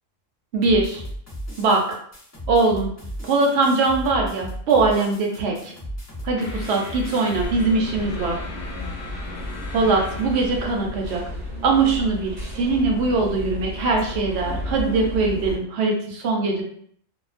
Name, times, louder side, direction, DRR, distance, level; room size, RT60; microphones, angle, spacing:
voice 1, 0.5-1.0 1.6-1.8 2.5-2.9 3.2-5.7 6.2-8.4 9.7-11.2 11.6-16.6, right 3 dB, 65° right, 1 dB, 0.8 m, -21 dB
sound 1, 0.6-7.4, equal, 15° left, 0.6 m, -35 dB
sound 2, 6.4-12.8, left 3 dB, 65° left, 0.8 m, -39 dB
sound 3, 7.4-15.6, left 1 dB, 35° right, 0.9 m, -33 dB
2.4 x 2.2 x 2.4 m, 0.63 s
omnidirectional pair, 1.4 m